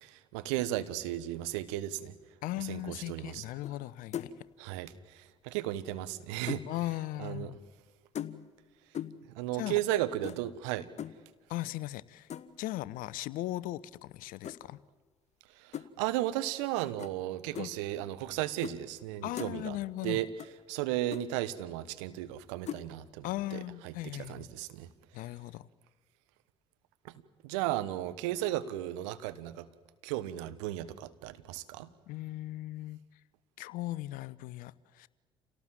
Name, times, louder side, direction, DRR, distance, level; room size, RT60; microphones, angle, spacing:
voice 1, 0.0-2.1 2.7-3.4 4.6-6.6 7.2-7.5 9.3-10.9 15.6-19.8 20.0-20.3 20.7-23.3 23.5-23.6 23.8-23.9 24.3-24.9 27.0-27.1 27.4-29.7 30.0-31.9, right 14 dB, 75° right, 14 dB, 1.2 m, -35 dB
voice 2, 2.4-4.3 6.7-7.6 9.5-9.8 11.5-12.3 12.6-14.8 17.6-17.7 19.2-20.2 23.2-24.5 25.1-25.7 32.1-33.0 33.6-35.1, left 16 dB, 65° left, 19 dB, 0.8 m, -38 dB
sound 1, 3.6-3.9 4.1-4.5 5.7-6.7 8.2-8.6 8.9-9.3 10.2-10.4 11.0-11.2 12.3-12.6 14.4-14.6 15.7-15.9 17.0-17.2 17.6-17.7 18.6-18.8 19.1-19.5 20.4-20.5 20.8-20.9 21.1-21.3 22.7-22.9, left 10 dB, 45° left, 1.2 m, -40 dB
28.0 x 18.0 x 7.5 m, 1.4 s
hypercardioid pair, 60°, 15 cm